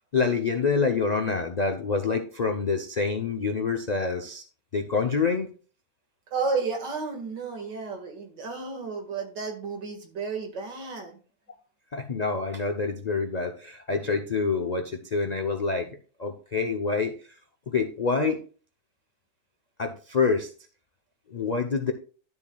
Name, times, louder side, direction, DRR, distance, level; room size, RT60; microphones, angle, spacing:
voice 1, 0.1-4.4 4.7-5.5 11.9-15.9 16.2-17.1 17.7-18.4 19.8-20.5 21.3-21.9, left 4 dB, 80° left, 5 dB, 0.3 m, -26 dB
voice 2, 6.3-11.2, right 4 dB, 90° right, 3 dB, 2.6 m, -32 dB
12.0 x 7.3 x 2.3 m, 0.39 s
omnidirectional pair, 1.8 m